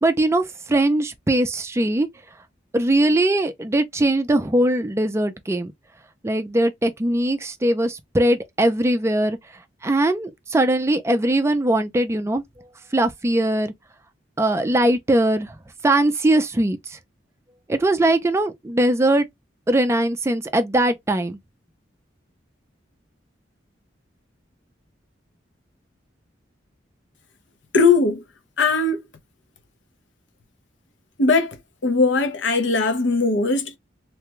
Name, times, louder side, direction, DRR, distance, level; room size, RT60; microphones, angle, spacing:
voice 1, 0.0-2.1 2.7-5.7 6.2-9.4 9.8-13.7 14.4-15.6 15.8-17.0 17.7-19.3 19.7-21.4, right 1 dB, 15° right, 0.4 m, -21 dB
voice 2, 27.7-28.2 28.6-29.0 31.2-31.6 31.8-33.8, left 3 dB, 75° left, 0.7 m, -19 dB
3.3 x 2.2 x 2.9 m
head